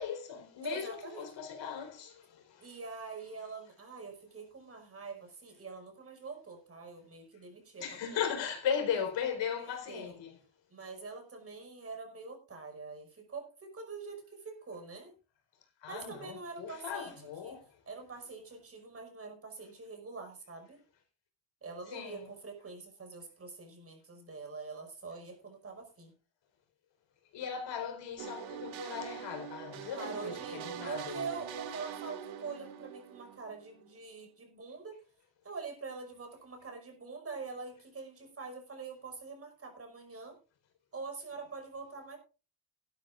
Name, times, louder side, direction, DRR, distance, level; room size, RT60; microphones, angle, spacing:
voice 1, 0.0-2.8 7.8-10.4 15.8-17.8 21.9-22.3 27.3-31.2, left 7 dB, 65° left, 4.4 m, -37 dB
voice 2, 0.6-1.3 2.6-7.8 8.1-8.2 9.9-10.2 10.7-15.1 15.9-17.1 17.4-17.6 17.9-20.8 21.6-26.1 29.9-35.0 35.4-40.4 40.9-42.2, right 4 dB, 30° right, 5.6 m, -44 dB
sound 1, 28.2-33.9, right 8 dB, 70° right, 2.4 m, -43 dB
17.0 x 12.5 x 2.5 m
cardioid pair, 155°, 48 cm